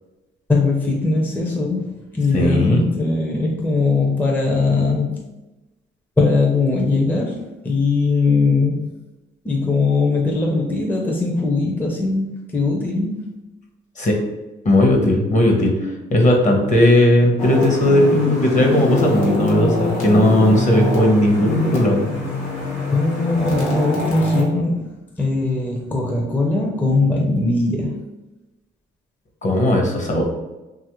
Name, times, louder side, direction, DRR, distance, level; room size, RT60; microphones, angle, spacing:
voice 1, 0.5-5.3 6.2-8.9 9.4-13.3 16.5-16.7 22.9-24.9 25.2-28.0, left 3 dB, 10° left, -1 dB, 0.4 m, -20 dB
voice 2, 2.3-2.8 14.0-14.2 14.6-22.1 29.4-30.2, left 1 dB, 40° left, 1 dB, 0.7 m, -16 dB
sound 1, 17.4-24.4, left 1 dB, 90° left, 0.9 m, -23 dB
2.9 x 2.4 x 2.9 m, 1.1 s
cardioid pair, 90°, 20 cm